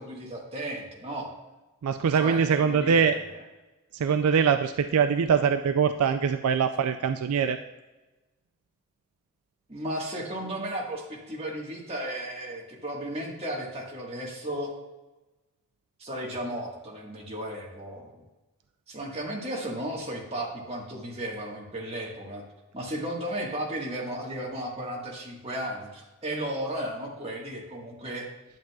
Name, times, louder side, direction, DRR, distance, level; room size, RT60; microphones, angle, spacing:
voice 1, 0.0-1.3 2.2-3.2 9.7-14.7 16.0-18.2 18.9-22.4 22.7-28.3, right 1 dB, 30° right, -2 dB, 1.5 m, -34 dB
voice 2, 1.8-3.2 3.9-7.6, right 6 dB, 90° right, 8 dB, 0.4 m, -23 dB
10.5 x 7.5 x 2.3 m, 1.1 s
head